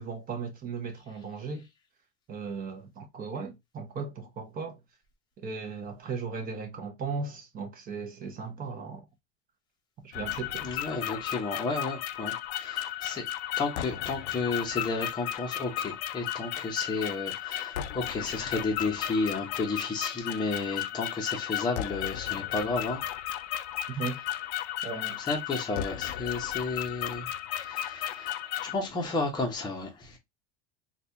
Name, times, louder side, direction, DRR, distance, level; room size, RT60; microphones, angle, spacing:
voice 1, 0.0-1.6 2.3-4.8 5.4-9.0 10.0-10.7 24.0-24.2 24.8-25.2, right 5 dB, 25° right, 0.9 m, -37 dB
sound 1, 10.1-28.7, left 12 dB, 75° left, 0.5 m, -34 dB
voice 2, 10.6-13.2 13.6-23.0 25.2-27.3 27.5-30.2, left 3 dB, 15° left, 0.8 m, -32 dB
4.0 x 2.4 x 2.7 m
supercardioid pair, 150°, 33 cm